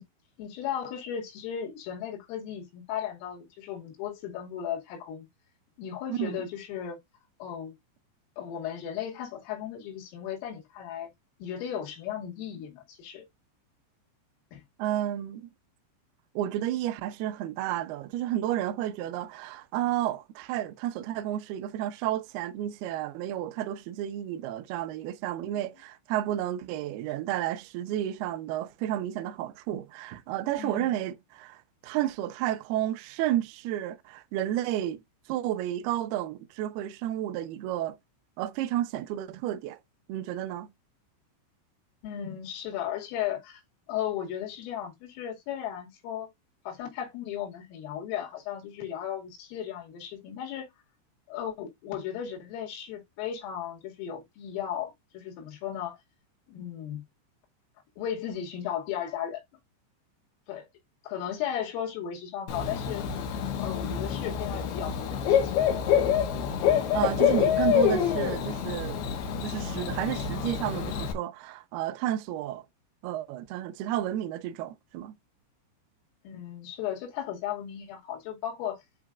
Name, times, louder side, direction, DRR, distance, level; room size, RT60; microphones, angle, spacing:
voice 1, 0.4-5.3 5.8-7.0 7.4-7.7 8.4-11.1 11.4-13.3 14.5-14.6 30.6-30.9 42.0-43.6 43.9-46.3 46.7-50.7 51.3-56.0 56.5-57.0 58.0-59.4 60.5-60.7 61.0-63.1 63.6-65.6 76.2-78.8, left 9 dB, 85° left, 4.9 m, -35 dB
voice 2, 6.1-6.4 14.8-15.5 16.4-35.0 35.3-38.0 38.4-39.8 40.1-40.7 66.9-69.0 69.4-72.6 73.0-75.1, right 12 dB, 85° right, 2.3 m, -31 dB
Bird / Cricket, 62.5-71.1, left 8 dB, 65° left, 2.8 m, -27 dB
10.5 x 4.9 x 2.4 m
omnidirectional pair, 5.8 m